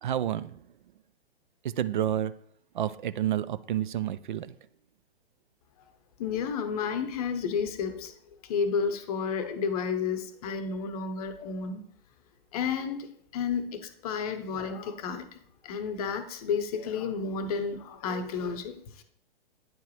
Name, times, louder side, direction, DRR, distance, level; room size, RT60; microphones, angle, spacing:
voice 1, 0.0-0.6 1.6-2.3 2.7-4.5, right 11 dB, 50° right, 15 dB, 0.4 m, -29 dB
voice 2, 6.2-8.1 8.4-11.8 12.5-13.1 13.3-15.4 15.6-19.0, left 6 dB, 35° left, 9 dB, 0.8 m, -31 dB
9.2 x 4.6 x 3.1 m, 0.68 s
figure-of-eight pair, 115°, 31 cm